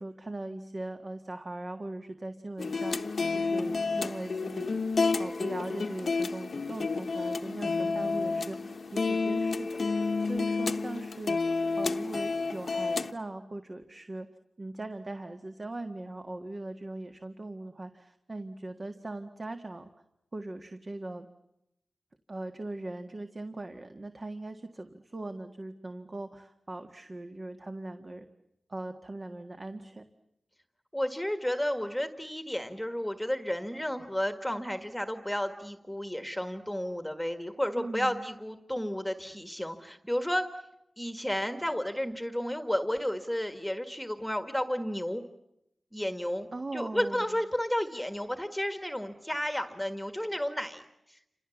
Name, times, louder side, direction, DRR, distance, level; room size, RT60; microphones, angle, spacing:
voice 1, 0.0-4.8 5.2-11.4 11.8-14.3 14.6-19.9 20.3-21.3 22.3-28.3 28.7-30.0 37.8-38.3 46.5-47.3, right 2 dB, 35° right, 6 dB, 1.7 m, -40 dB
sound 1, 2.6-13.1, left 4 dB, 65° left, 1.2 m, -30 dB
voice 2, 30.9-40.5 41.0-45.2 45.9-50.8 51.1-51.2, equal, 5° left, 7 dB, 1.7 m, -32 dB
29.5 x 27.0 x 7.2 m, 0.85 s
wide cardioid pair, 100°, 0 cm